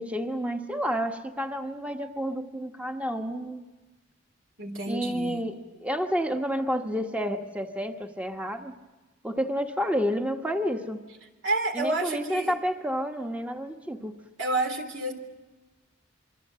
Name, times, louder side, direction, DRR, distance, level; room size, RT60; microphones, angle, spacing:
voice 1, 0.0-3.7 4.9-8.8 9.2-11.0 11.7-14.1, equal, 5° right, 4 dB, 1.2 m, -30 dB
voice 2, 4.6-5.4 11.4-12.6 14.4-15.1, right 2 dB, 70° right, 5 dB, 3.6 m, -29 dB
27.0 x 24.0 x 7.5 m, 1.2 s
head